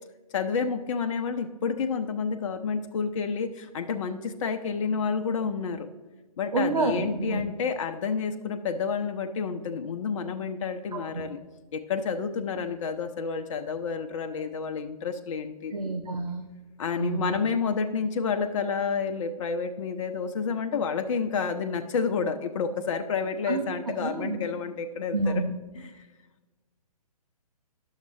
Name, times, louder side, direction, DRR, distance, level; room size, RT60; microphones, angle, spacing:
voice 1, 0.3-5.9 6.4-11.4 11.7-15.7 16.8-25.3 25.7-25.9, left 5 dB, 55° left, 6 dB, 0.5 m, -29 dB
voice 2, 6.5-7.5 10.9-11.2 15.7-16.4 17.0-17.4 23.5-23.6 24.0-24.4 25.1-25.5, right 3 dB, 75° right, 5 dB, 0.8 m, -28 dB
10.0 x 6.5 x 3.2 m, 1.2 s
figure-of-eight pair, 130°, 20 cm